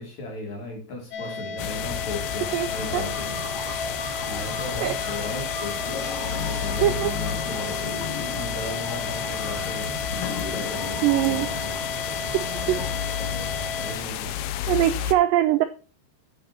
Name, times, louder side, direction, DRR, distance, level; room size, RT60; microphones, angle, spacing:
voice 1, 0.0-3.4 3.9-5.8 6.3-11.9 12.8-14.3, left 2 dB, 45° left, -1 dB, 4.3 m, -36 dB
sound 1, 1.1-14.0, left 3 dB, 65° left, 2.2 m, -34 dB
sound 2, 1.6-15.1, left 10 dB, 85° left, 2.6 m, -32 dB
sound 3, 2.4-12.9, left 3 dB, 30° left, 2.2 m, -36 dB
voice 2, 2.5-3.1 4.8-5.0 6.8-7.1 11.0-11.5 12.3-12.8 14.7-15.7, right 13 dB, 90° right, 9 dB, 1.9 m, -22 dB
9.9 x 6.3 x 4.3 m, 0.36 s
omnidirectional pair, 4.6 m